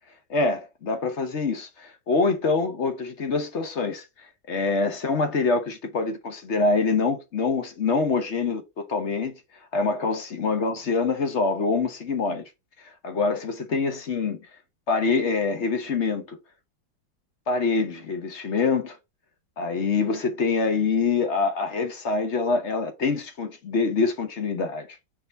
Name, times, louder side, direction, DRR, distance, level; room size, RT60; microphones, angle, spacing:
voice 1, 0.3-4.1 4.5-9.3 9.7-12.4 12.8-14.4 14.9-16.4 17.5-19.0 19.6-24.9, left 4 dB, 50° left, 0.9 m, -25 dB
4.7 x 3.8 x 5.3 m
omnidirectional pair, 2.1 m